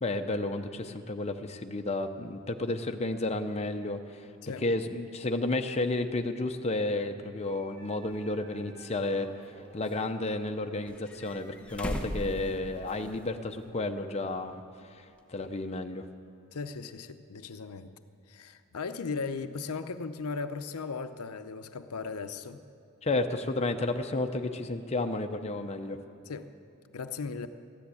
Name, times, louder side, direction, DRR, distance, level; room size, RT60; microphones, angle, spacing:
voice 1, 0.0-4.3 4.6-9.3 9.7-14.6 14.9-16.0 23.0-26.0, left 2 dB, 30° left, 6 dB, 0.7 m, -32 dB
Wind instrument woodwind instrument, 7.5-12.8, equal, 45° right, 2.5 m, -58 dB
sound 1, 8.1-8.2 9.0-10.0 10.9-13.2 13.5-13.6 15.2-15.3, equal, 5° left, 1.0 m, -38 dB
voice 2, 16.5-17.9 18.3-22.6 23.0-23.2 26.3-26.5 26.9-27.5, left 4 dB, 90° left, 10 dB, 0.6 m, -37 dB
13.5 x 10.5 x 8.4 m, 2.5 s
head